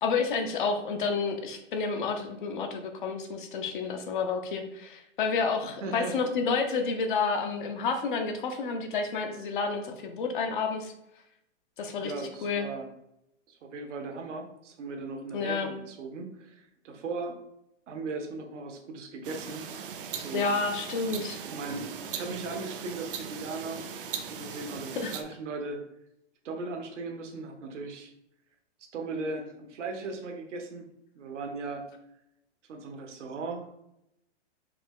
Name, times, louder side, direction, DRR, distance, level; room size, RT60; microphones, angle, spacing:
voice 1, 0.0-10.9 11.8-12.1 12.4-12.7 15.3-15.7 20.3-21.4 25.0-25.1, left 4 dB, 45° left, 5 dB, 0.6 m, -30 dB
voice 2, 5.6-6.2 12.0-12.9 13.5-17.4 17.9-19.7 20.1-20.4 21.5-23.8 24.2-25.8 26.4-28.1 28.9-30.9 31.1-31.9 32.7-33.8, right 3 dB, 75° right, 3 dB, 1.1 m, -38 dB
sound 1, 19.2-25.2, right 7 dB, 50° right, 0.6 m, -39 dB
5.0 x 2.9 x 3.6 m, 0.82 s
hypercardioid pair, 150°, 37 cm